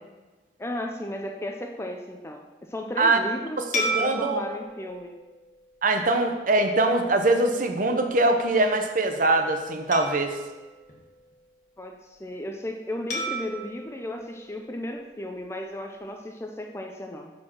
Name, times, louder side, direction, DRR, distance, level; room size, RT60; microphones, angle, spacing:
voice 1, 0.6-2.4 2.7-5.1 11.8-17.3, left 1 dB, 15° left, 3 dB, 0.5 m, -34 dB
sound 1, 3.7-6.4 7.0-7.2 9.9-11.7 13.1-15.4, right 1 dB, 45° left, 1.5 m, -35 dB
voice 2, 3.9-4.4 5.8-10.3, right 2 dB, 50° right, 6 dB, 0.8 m, -22 dB
7.5 x 4.4 x 6.0 m, 1.2 s
head